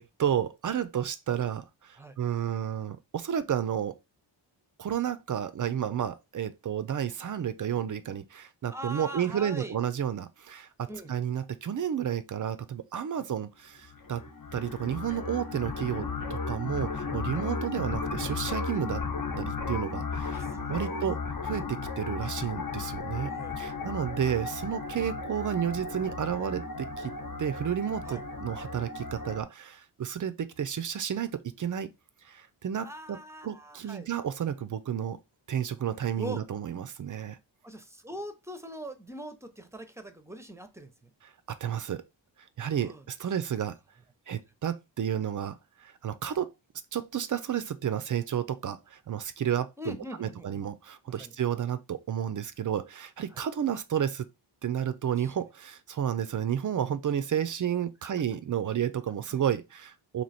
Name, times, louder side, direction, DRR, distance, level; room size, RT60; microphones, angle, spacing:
voice 1, 0.0-4.0 4.8-14.2 14.5-19.1 19.4-23.3 23.6-27.1 27.4-31.9 32.2-33.2 33.4-35.2 35.5-37.4 41.5-42.0 42.6-43.8 44.3-46.5 46.9-54.3 54.6-60.2, right 9 dB, 45° right, 0.4 m, -31 dB
voice 2, 8.7-9.8 10.9-11.1 13.2-13.3 17.4-17.5 20.3-21.0 23.2-23.6 28.0-28.2 32.8-34.1 36.2-36.4 37.6-41.1 42.6-43.0 49.8-50.6 51.2-51.4 53.3-53.4 55.2-55.3 59.3-59.4, equal, 5° right, 0.7 m, -42 dB
sound 1, 13.9-29.4, left 4 dB, 45° left, 1.0 m, -35 dB
3.0 x 2.8 x 4.1 m
cardioid pair, 65°, 46 cm